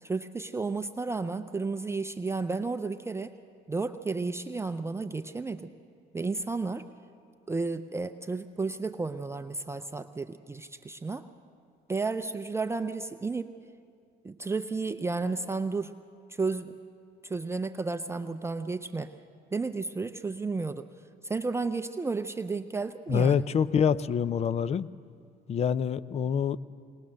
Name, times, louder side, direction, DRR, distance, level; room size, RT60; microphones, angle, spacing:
voice 1, 0.0-3.3 3.7-5.7 6.1-6.8 7.5-11.2 11.9-13.5 14.2-15.9 16.3-16.7 17.2-19.1 19.5-20.9 21.2-23.4, right 3 dB, 15° right, 9 dB, 0.5 m, -32 dB
voice 2, 23.1-24.9 25.5-26.6, left 7 dB, 40° left, 18 dB, 0.5 m, -26 dB
20.5 x 19.5 x 6.4 m, 2.3 s
cardioid pair, 110°, 17 cm